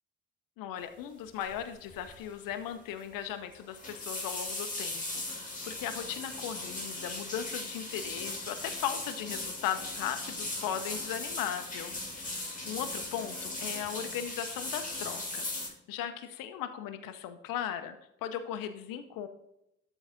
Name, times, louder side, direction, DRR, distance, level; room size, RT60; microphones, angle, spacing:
voice 1, 0.6-15.6 15.9-19.3, left 9 dB, 60° left, 9 dB, 0.9 m, -38 dB
sound 1, 1.4-1.6 1.9-2.2 2.5-2.6 3.5-15.7, left 2 dB, 20° left, 2.8 m, -38 dB
12.0 x 4.0 x 3.7 m, 0.83 s
figure-of-eight pair, 45°, 39 cm